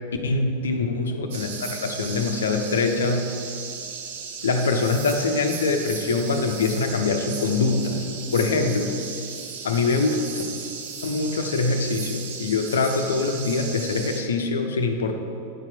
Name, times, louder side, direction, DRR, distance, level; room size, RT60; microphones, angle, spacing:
voice 1, 0.2-3.3 4.4-8.1 8.3-8.9 9.6-10.4 11.0-15.2, left 3 dB, 65° left, 5 dB, 0.7 m, -24 dB
sound 1, 1.3-14.2, right 6 dB, 55° right, 0.8 m, -36 dB
9.0 x 4.5 x 5.8 m, 2.7 s
figure-of-eight pair, 90°, 0 cm